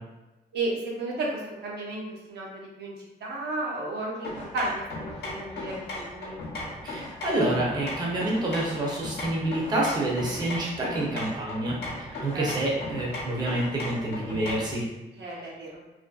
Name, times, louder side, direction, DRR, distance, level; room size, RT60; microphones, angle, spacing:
voice 1, 0.5-2.0 2.3-2.9 3.2-6.4 12.3-12.5 15.1-15.8, right 2 dB, 80° right, -4 dB, 0.7 m, -33 dB
sound 1, 4.2-14.8, left 1 dB, 75° left, 0.7 m, -37 dB
voice 2, 6.8-14.8, right 1 dB, 25° right, -4 dB, 0.5 m, -28 dB
2.6 x 2.5 x 2.3 m, 1.1 s
wide cardioid pair, 145°, 17 cm